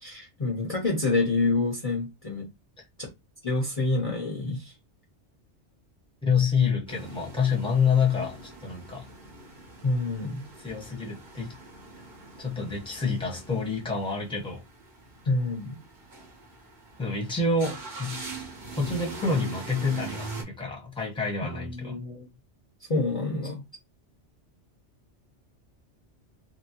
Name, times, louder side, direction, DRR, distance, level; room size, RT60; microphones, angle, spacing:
voice 1, 0.0-2.5 3.4-4.7 9.8-10.4 15.3-15.8 21.4-22.3 22.9-23.6, left 3 dB, 35° left, 0.7 m, -27 dB
voice 2, 6.2-9.1 10.6-11.5 12.4-14.6 17.0-18.2 18.8-22.0, left 5 dB, 5° left, 0.9 m, -27 dB
sound 1, 6.9-20.4, right 3 dB, 45° right, 1.0 m, -42 dB
2.9 x 2.7 x 2.8 m
omnidirectional pair, 1.2 m